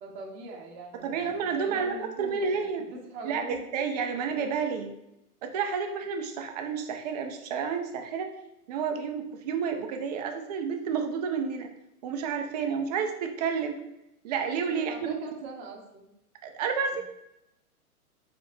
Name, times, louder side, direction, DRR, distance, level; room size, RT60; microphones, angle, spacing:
voice 1, 0.0-3.6 14.7-16.1 16.9-17.0, right 2 dB, 45° right, 0 dB, 1.1 m, -42 dB
voice 2, 0.9-2.8 3.2-4.9 5.4-8.3 8.7-11.7 12.0-13.8 14.2-15.2 16.4-17.0, right 6 dB, 30° right, 5 dB, 0.4 m, -30 dB
4.9 x 2.9 x 3.2 m, 0.84 s
hypercardioid pair, 130°, 45 cm